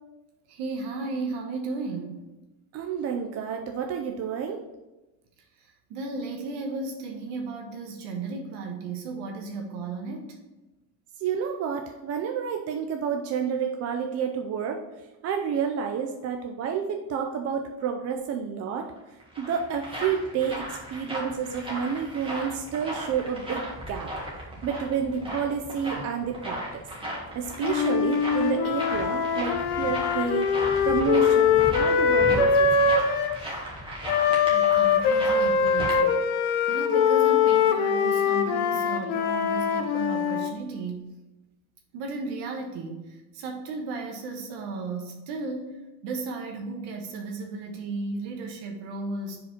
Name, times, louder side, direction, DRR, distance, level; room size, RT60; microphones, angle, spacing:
voice 1, 0.5-2.3 5.9-10.3 34.5-36.3 36.7-41.1 41.9-45.8 46.0-49.4, right 3 dB, 65° right, 2 dB, 1.2 m, -34 dB
voice 2, 2.7-4.6 11.2-14.8 15.2-18.9 19.4-24.1 24.6-26.8 27.3-30.6 30.8-32.9, right 7 dB, 35° right, 3 dB, 0.5 m, -30 dB
sound 1, 19.0-36.0, equal, 10° right, 1.7 m, -36 dB
Wind instrument woodwind instrument, 27.6-33.4 34.1-40.6, left 6 dB, 60° left, 0.9 m, -23 dB
5.1 x 4.1 x 5.8 m, 1.1 s
cardioid pair, 140°, 44 cm